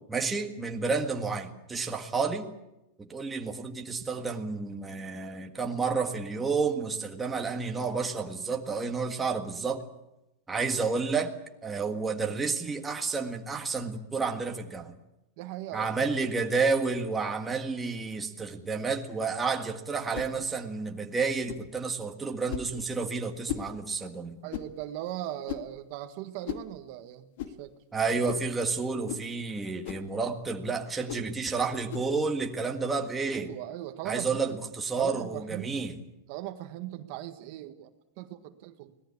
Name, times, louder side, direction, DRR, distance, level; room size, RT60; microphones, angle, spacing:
voice 1, 0.1-2.5 3.0-9.8 10.5-11.3 11.6-14.9 15.7-24.4 27.9-33.5 34.0-35.9, right 4 dB, 10° right, 2 dB, 1.7 m, -30 dB
voice 2, 15.4-16.1 24.4-27.7 33.3-34.6 35.0-35.9 36.3-37.9 38.2-38.9, right 13 dB, 45° right, 8 dB, 1.6 m, -39 dB
sound 1, 20.1-20.3 21.5-21.7 22.5-22.7 23.5-23.7 24.5-24.7 25.5-25.7 26.4-26.7 27.4-27.6 28.2-28.5 29.1-29.3 29.8-30.1 31.1-31.3 31.9-32.1, left 11 dB, 60° left, 2.2 m, -37 dB
25.0 x 19.0 x 8.5 m, 0.91 s
supercardioid pair, 165°, 0 cm